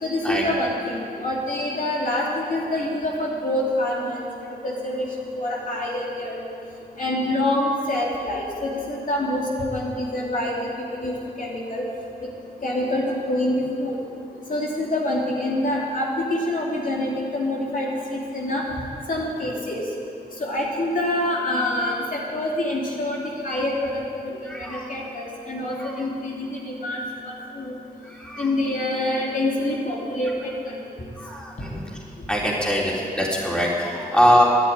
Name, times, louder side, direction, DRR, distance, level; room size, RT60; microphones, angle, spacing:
voice 1, 0.0-4.2 4.6-5.0 5.4-6.4 7.0-10.7 11.0-11.8 12.6-14.0 14.5-18.6 19.1-19.8 20.4-27.7 28.4-30.8, left 1 dB, 55° left, -4 dB, 3.0 m, -26 dB
voice 2, 24.4-24.9 25.8-25.9 28.1-28.4 31.2-31.8 32.3-34.4, equal, 5° left, -4 dB, 3.8 m, -22 dB
13.0 x 9.8 x 9.5 m, 2.5 s
cardioid pair, 60°, 17 cm